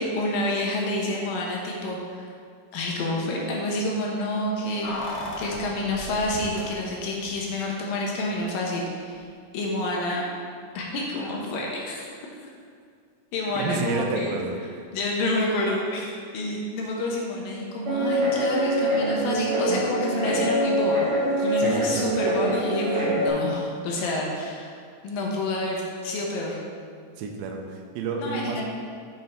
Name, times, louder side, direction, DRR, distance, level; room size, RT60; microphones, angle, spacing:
voice 1, 0.0-2.3 2.7-4.9 5.4-9.3 9.5-10.2 10.8-12.1 12.4-12.5 13.3-14.4 14.9-21.0 21.4-24.8 25.0-26.6 28.2-28.6, left 1 dB, 75° left, -2 dB, 2.3 m, -28 dB
Keys jangling, 4.8-7.2 7.4-7.5, left 1 dB, 90° left, 3.2 m, -36 dB
voice 2, 13.5-14.5 21.6-22.1 27.2-28.6, right 4 dB, 85° right, 2 dB, 2.1 m, -30 dB
Guitar, 17.8-23.3, right 1 dB, 40° right, 2.1 m, -24 dB
7.5 x 5.5 x 4.3 m, 2.2 s
omnidirectional pair, 4.8 m